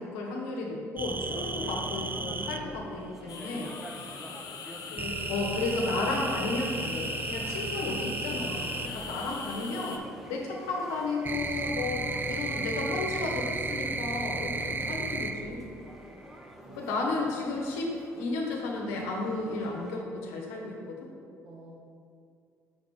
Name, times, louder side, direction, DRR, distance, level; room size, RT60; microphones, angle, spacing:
voice 1, 0.0-3.7 4.9-10.0 10.3-15.7 16.8-21.1, left 2 dB, 75° left, -1 dB, 1.1 m, -33 dB
sound 1, 1.0-2.6 5.0-8.9 10.3-15.6 15.9-16.4, right 3 dB, 25° right, 0.4 m, -34 dB
sound 2, 1.1-20.0, equal, ahead, 0.9 m, -48 dB
sound 3, 3.3-10.0, left 5 dB, 55° left, 0.6 m, -41 dB
voice 2, 14.5-15.0 16.6-17.0 21.4-21.7, right 1 dB, 60° right, -8 dB, 1.6 m, -52 dB
6.9 x 5.1 x 3.7 m, 2.3 s
hypercardioid pair, 55°, 8 cm